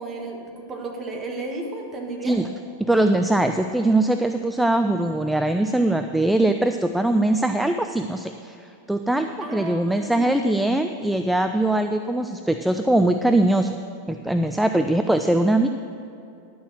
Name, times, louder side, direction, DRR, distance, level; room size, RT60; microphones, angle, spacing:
voice 1, 0.0-2.4 9.4-10.5, right 2 dB, 25° right, 0 dB, 1.6 m, -33 dB
voice 2, 2.8-13.8 14.1-15.7, right 1 dB, 5° right, 7 dB, 0.3 m, -21 dB
11.0 x 6.4 x 6.3 m, 2.7 s
figure-of-eight pair, 90°, 0 cm